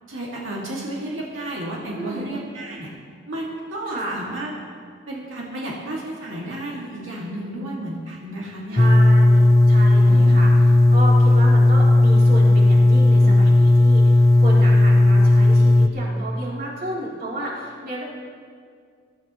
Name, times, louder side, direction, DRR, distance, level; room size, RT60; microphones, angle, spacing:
voice 1, 0.1-2.9 3.3-4.5 5.1-8.9 10.1-10.8, right 1 dB, 85° right, -5 dB, 2.4 m, -32 dB
voice 2, 1.9-2.3 3.9-4.2 7.6-7.7 8.7-10.5 10.9-18.0, right 1 dB, 45° right, -6 dB, 3.5 m, -32 dB
sound 1, 8.8-15.9, left 2 dB, 15° left, 0.3 m, -14 dB
22.0 x 13.5 x 3.1 m, 2.1 s
head